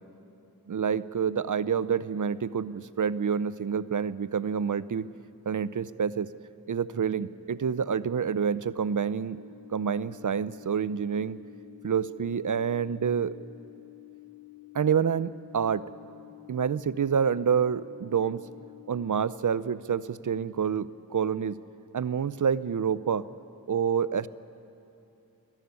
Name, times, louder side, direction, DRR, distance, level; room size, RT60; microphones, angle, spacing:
voice 1, 0.7-5.1 5.5-6.3 6.7-9.4 9.7-11.4 11.8-13.4 14.7-15.9 16.5-18.4 18.9-21.6 21.9-23.3 23.7-24.3, right 7 dB, 55° right, 16 dB, 0.6 m, -28 dB
sound 1, 9.0-19.0, left 18 dB, 85° right, 5.9 m, -50 dB
22.0 x 14.0 x 9.7 m, 2.8 s
wide cardioid pair, 65°, 37 cm